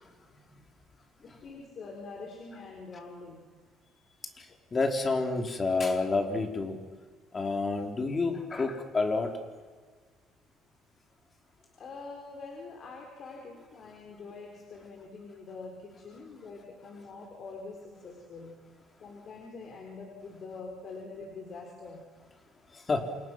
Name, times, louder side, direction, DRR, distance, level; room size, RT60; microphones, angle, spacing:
voice 1, 1.2-3.4 4.5-4.6 11.8-18.6 19.0-22.0, left 3 dB, 45° left, 1 dB, 4.2 m, -45 dB
voice 2, 4.7-6.8 7.3-9.3 22.9-23.0, left 3 dB, 25° left, 4 dB, 3.4 m, -28 dB
28.0 x 27.5 x 6.3 m, 1.5 s
cardioid pair, 130°, 0 cm